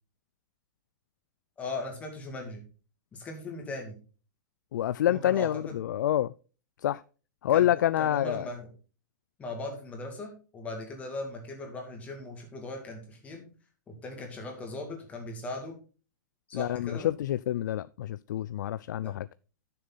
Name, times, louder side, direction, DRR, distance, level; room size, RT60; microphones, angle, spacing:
voice 1, 1.6-2.6 3.1-4.0 5.1-5.8 7.5-8.7 9.4-13.5 13.9-15.8 16.5-17.1 19.0-19.1, left 2 dB, 15° left, 2.3 m, -39 dB
voice 2, 4.7-6.3 6.8-7.0 7.4-8.5 16.5-19.3, left 12 dB, 85° left, 0.3 m, -27 dB
11.0 x 6.7 x 3.9 m
supercardioid pair, 165°, 10 cm